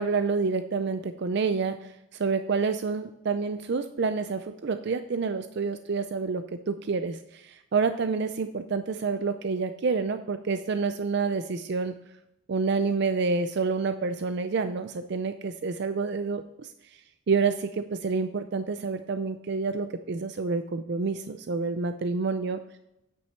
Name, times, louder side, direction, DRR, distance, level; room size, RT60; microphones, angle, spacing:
voice 1, 0.0-11.9 12.5-16.7 17.3-22.6, right 4 dB, 55° right, 9 dB, 0.4 m, -28 dB
8.7 x 6.2 x 4.4 m, 0.86 s
head